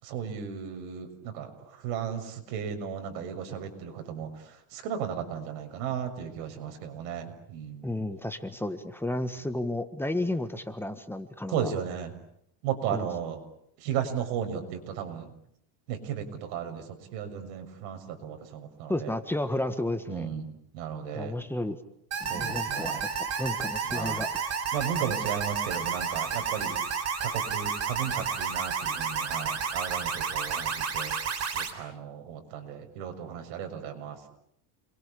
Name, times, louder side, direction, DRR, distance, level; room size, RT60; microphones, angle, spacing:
voice 1, 0.0-1.5 1.8-4.3 4.7-7.9 11.5-12.1 12.6-13.4 13.8-15.3 15.9-16.8 17.1-19.1 20.1-21.3 22.3-23.0 23.9-24.2 24.7-26.8 27.2-31.1 31.5-34.2, right 8 dB, 80° right, 5 dB, 6.7 m, -35 dB
voice 2, 7.8-11.7 12.9-13.1 18.9-20.4 21.1-21.8 22.2-23.1 23.4-24.3, left 1 dB, 5° left, 9 dB, 1.6 m, -32 dB
sound 1, 22.1-31.7, right 6 dB, 35° right, 4.2 m, -31 dB
30.0 x 23.0 x 8.6 m, 0.73 s
cardioid pair, 155°, 46 cm